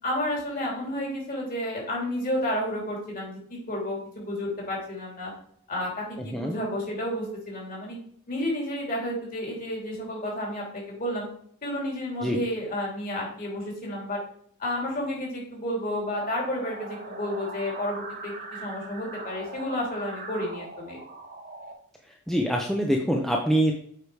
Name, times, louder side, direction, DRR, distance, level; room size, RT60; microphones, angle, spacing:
voice 1, 0.0-5.3 5.7-8.0 8.3-11.3 11.6-14.2 14.6-18.3 18.6-21.0, left 1 dB, 40° left, -3 dB, 3.2 m, -31 dB
sound 1, 16.1-21.7, right 3 dB, 40° right, 1.1 m, -41 dB
voice 2, 22.3-23.7, equal, ahead, 0 dB, 0.6 m, -24 dB
8.2 x 4.8 x 4.7 m, 0.62 s
head